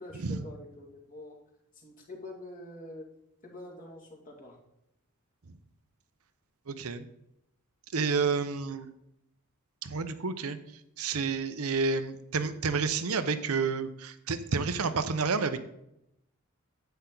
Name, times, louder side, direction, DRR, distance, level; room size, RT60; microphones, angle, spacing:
voice 1, 0.0-1.4 1.8-3.1 3.4-4.6, left 1 dB, 35° left, -1 dB, 2.3 m, -45 dB
voice 2, 6.7-7.0 7.9-8.9 9.8-10.6 11.0-15.6, right 4 dB, 85° right, 10 dB, 0.8 m, -30 dB
10.5 x 8.1 x 3.9 m, 0.82 s
head